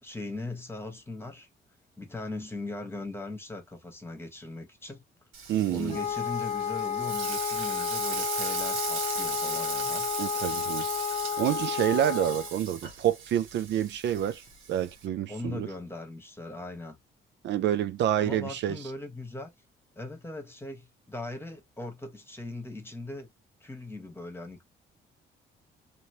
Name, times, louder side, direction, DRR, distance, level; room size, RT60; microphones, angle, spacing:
voice 1, 0.0-1.5 2.0-5.0 5.7-10.1 15.3-17.0 18.2-19.5 20.0-23.3 23.6-24.6, left 2 dB, 10° left, 1.2 m, -39 dB
Frying (food), 5.3-15.1, right 6 dB, 85° right, 1.2 m, -37 dB
voice 2, 5.5-6.0 10.2-10.9 11.4-14.4 14.7-15.7 17.4-18.8, right 11 dB, 65° right, 0.4 m, -28 dB
Wind instrument woodwind instrument, 5.9-12.5, left 8 dB, 35° left, 0.4 m, -32 dB
3.0 x 2.7 x 2.8 m
cardioid pair, 90°, 20 cm